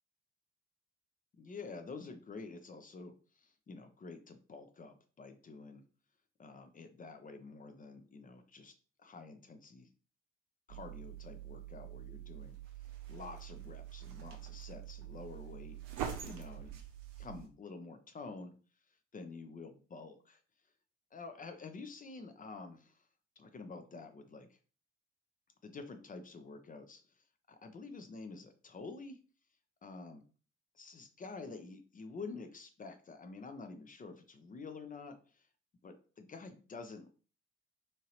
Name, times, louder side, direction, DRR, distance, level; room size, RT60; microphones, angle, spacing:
voice 1, 1.4-5.8 6.4-9.9 10.7-12.6 13.1-15.8 16.2-16.8 17.2-18.5 19.1-20.4 21.1-23.1 23.4-24.6 25.6-29.2 29.8-30.2 30.7-35.5 35.8-37.1, left 4 dB, 25° left, 7 dB, 0.5 m, -49 dB
sound 1, 10.7-17.5, right 10 dB, 65° right, 0.6 m, -45 dB
2.8 x 2.7 x 2.9 m, 0.38 s
figure-of-eight pair, 40°, 34 cm